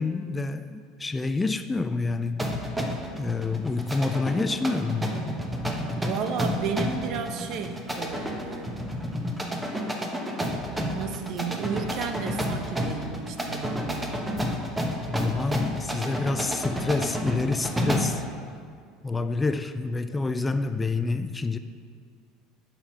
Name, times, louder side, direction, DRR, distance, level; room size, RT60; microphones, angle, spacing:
voice 1, 0.0-2.5 3.2-5.1 15.1-18.2 19.0-21.6, left 3 dB, 15° left, 10 dB, 0.4 m, -28 dB
sound 1, 2.4-18.2, equal, 10° right, 1.1 m, -30 dB
voice 2, 5.9-8.8 10.4-14.2, right 6 dB, 50° right, 7 dB, 0.8 m, -33 dB
11.0 x 4.4 x 5.5 m, 2.1 s
figure-of-eight pair, 70°, 0 cm